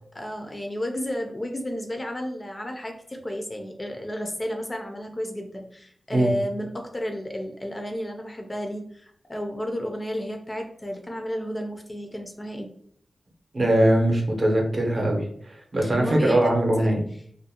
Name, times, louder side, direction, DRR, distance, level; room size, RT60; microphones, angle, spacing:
voice 1, 0.1-12.7 15.9-17.0, equal, 25° left, 3 dB, 0.3 m, -32 dB
voice 2, 13.5-17.0, right 1 dB, 45° right, 0 dB, 0.6 m, -21 dB
2.5 x 2.1 x 2.7 m, 0.64 s
wide cardioid pair, 105°, 0 cm